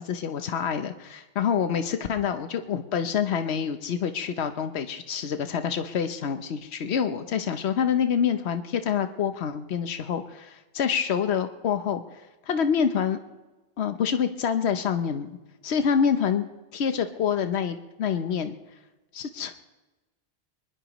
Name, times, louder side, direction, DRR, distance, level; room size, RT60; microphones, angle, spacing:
voice 1, 0.0-12.0 12.5-13.2 13.8-15.4 15.6-16.5 16.7-18.6 19.1-19.5, left 7 dB, 85° left, 8 dB, 1.1 m, -26 dB
22.5 x 20.0 x 3.0 m, 1.1 s
omnidirectional pair, 1.1 m